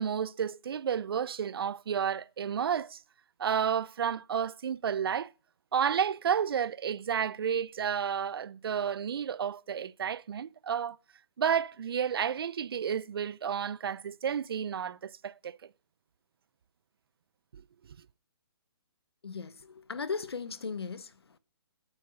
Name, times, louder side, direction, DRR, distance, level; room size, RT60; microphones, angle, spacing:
voice 1, 0.0-3.0 3.4-5.3 5.7-11.0 11.4-15.6, right 8 dB, 70° right, 0.5 m, -31 dB
voice 2, 19.2-21.4, left 5 dB, 85° left, 1.0 m, -37 dB
9.0 x 7.7 x 9.2 m
hypercardioid pair, 145°, 13 cm